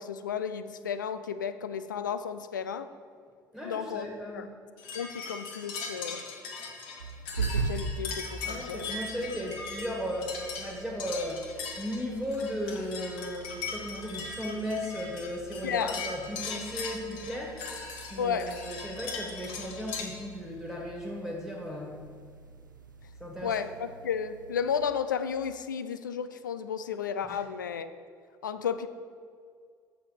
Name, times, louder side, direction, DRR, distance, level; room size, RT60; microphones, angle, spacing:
voice 1, 0.0-2.9 3.6-4.1 4.3-4.5 4.9-6.2 7.3-9.0 15.6-15.9 18.2-18.6 23.4-27.9 28.4-28.9, left 7 dB, 75° left, 11 dB, 0.5 m, -33 dB
voice 2, 3.5-4.5 8.4-11.5 11.8-17.6 18.1-22.0 23.2-23.7 27.3-27.4, equal, 5° right, -2 dB, 1.7 m, -36 dB
sound 1, 4.8-20.0, left 5 dB, 60° left, 1.6 m, -39 dB
sound 2, 7.0-24.9, right 4 dB, 85° right, 0.4 m, -42 dB
7.6 x 6.6 x 6.4 m, 2.1 s
figure-of-eight pair, 60°, 10 cm